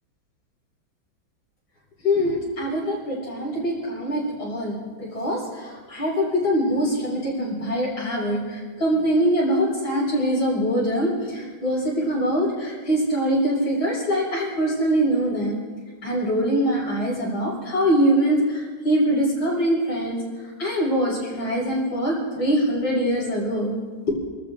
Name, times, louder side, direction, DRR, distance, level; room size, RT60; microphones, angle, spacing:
voice 1, 2.0-15.6 16.0-20.2 20.6-23.7, equal, 90° left, -7 dB, 7.4 m, -23 dB
29.5 x 13.5 x 3.6 m, 1.5 s
omnidirectional pair, 2.2 m